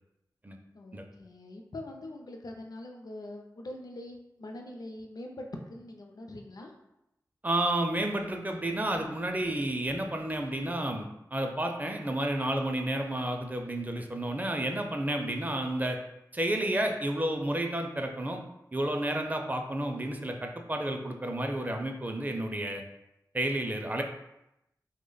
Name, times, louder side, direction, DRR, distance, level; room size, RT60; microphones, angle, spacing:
voice 1, 0.7-6.7, left 1 dB, 60° left, 3 dB, 0.5 m, -43 dB
voice 2, 7.4-16.0 16.3-18.4 18.7-22.8 23.3-24.0, right 1 dB, 25° right, 3 dB, 0.4 m, -31 dB
3.2 x 2.1 x 3.8 m, 0.87 s
wide cardioid pair, 65°, 7 cm